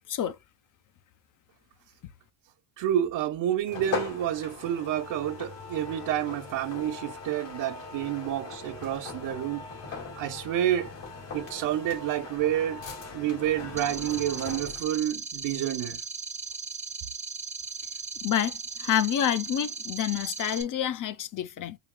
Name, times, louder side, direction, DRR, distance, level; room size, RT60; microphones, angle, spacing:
voice 1, 2.8-9.7 10.2-10.9 11.3-12.8 13.1-16.0, right 11 dB, 75° right, 1.0 m, -29 dB
sound 1, 3.7-14.9, left 4 dB, 75° left, 2.2 m, -40 dB
sound 2, 13.8-20.6, right 5 dB, 15° right, 0.7 m, -37 dB
voice 2, 18.2-21.8, left 10 dB, 45° left, 0.7 m, -28 dB
5.0 x 2.9 x 2.2 m
cardioid pair, 130°, 44 cm